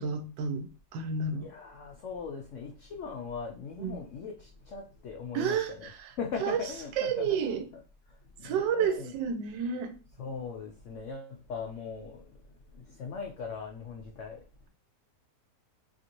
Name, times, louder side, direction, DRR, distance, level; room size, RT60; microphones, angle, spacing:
voice 1, 0.0-1.5 3.8-4.0 5.3-5.7 6.4-6.6 7.0-7.6 8.4-9.9, right 6 dB, 85° right, 1.2 m, -30 dB
voice 2, 1.4-5.9 6.2-7.6 8.1-9.1 10.2-14.7, left 5 dB, 85° left, 0.6 m, -40 dB
3.0 x 2.5 x 2.8 m
omnidirectional pair, 1.9 m